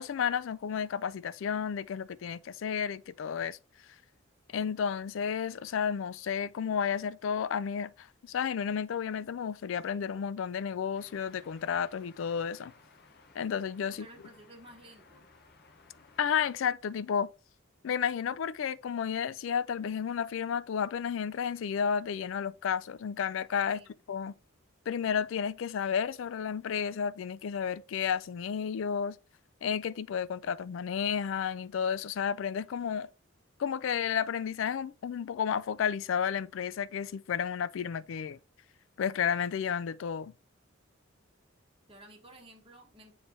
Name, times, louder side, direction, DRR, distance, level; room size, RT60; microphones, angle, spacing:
voice 1, 0.0-3.6 4.5-12.7 13.4-14.1 16.2-17.3 17.8-23.8 24.1-24.3 24.9-29.2 29.6-33.1 33.6-38.4 39.0-40.3, left 7 dB, 70° left, 0.3 m, -32 dB
sound 1, 10.9-16.7, left 4 dB, 50° left, 0.8 m, -59 dB
voice 2, 13.8-15.3 23.6-23.9 41.9-43.2, right 1 dB, 25° right, 1.3 m, -53 dB
7.2 x 3.3 x 4.2 m
head